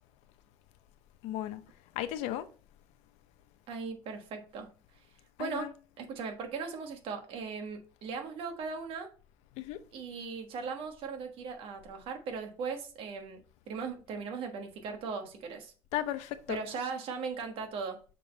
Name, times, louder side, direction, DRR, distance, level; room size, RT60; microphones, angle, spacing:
voice 1, 1.2-1.6 1.9-2.5 5.4-5.7 9.6-9.8 15.9-16.6, left 12 dB, 75° left, 0.7 m, -35 dB
voice 2, 3.7-4.7 5.4-5.7 6.0-9.1 9.9-13.4 13.7-15.7 16.5-18.0, right 5 dB, 55° right, 1.4 m, -38 dB
6.5 x 3.8 x 3.9 m
cardioid pair, 145°, 11 cm